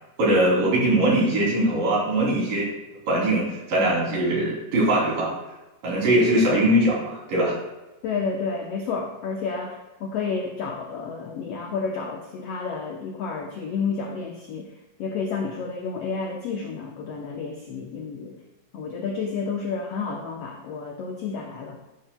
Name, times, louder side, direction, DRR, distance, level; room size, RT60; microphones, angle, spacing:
voice 1, 0.2-2.7 3.1-5.3 5.8-7.6, right 1 dB, 75° right, -4 dB, 4.8 m, -21 dB
voice 2, 8.0-14.7 15.0-18.4 18.7-21.8, left 5 dB, 75° left, 1 dB, 1.4 m, -30 dB
11.5 x 10.0 x 2.2 m, 1.0 s
omnidirectional pair, 4.0 m